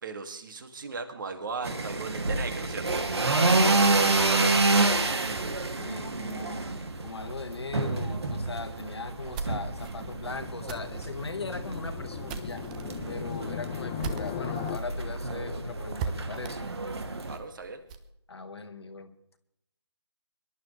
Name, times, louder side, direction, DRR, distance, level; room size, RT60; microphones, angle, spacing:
voice 1, 0.0-4.9 17.2-17.8, right 4 dB, 45° right, 8 dB, 2.4 m, -38 dB
sound 1, 1.6-17.4, right 3 dB, 60° right, 2.6 m, -28 dB
voice 2, 5.7-6.7 7.0-12.7 13.1-16.7 18.3-19.1, left 4 dB, 60° left, 7 dB, 1.9 m, -39 dB
sound 2, 9.0-14.7 15.1-15.2 15.5-15.6 16.0-18.1, right 5 dB, 15° right, 0.8 m, -40 dB
sound 3, 9.7-14.8, left 10 dB, 15° left, 0.6 m, -38 dB
25.0 x 12.0 x 3.3 m, 0.75 s
figure-of-eight pair, 155°, 15 cm